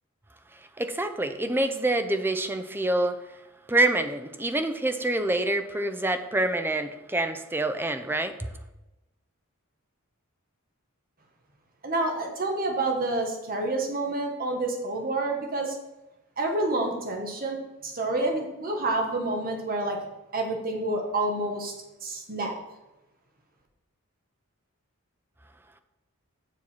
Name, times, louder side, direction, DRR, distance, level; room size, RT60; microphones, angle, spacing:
voice 1, 0.5-3.2 3.7-8.5, right 2 dB, 10° right, 8 dB, 0.5 m, -26 dB
voice 2, 11.8-15.7 16.4-17.6 17.8-20.0 20.3-21.7 22.0-22.5, right 2 dB, 40° right, 1 dB, 1.3 m, -28 dB
7.8 x 7.2 x 4.4 m, 0.99 s
head